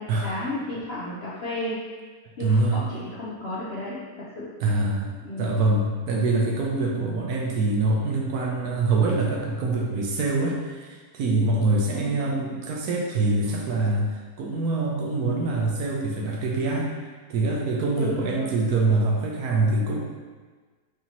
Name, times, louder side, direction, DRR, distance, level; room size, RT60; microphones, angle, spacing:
voice 1, 0.0-1.8 2.4-4.5 5.2-5.5 11.9-12.2 18.0-18.5, left 1 dB, 60° left, -8 dB, 0.7 m, -33 dB
voice 2, 2.4-2.8 4.6-20.0, right 2 dB, 75° right, -1 dB, 1.1 m, -24 dB
4.8 x 2.8 x 2.9 m, 1.4 s
omnidirectional pair, 1.7 m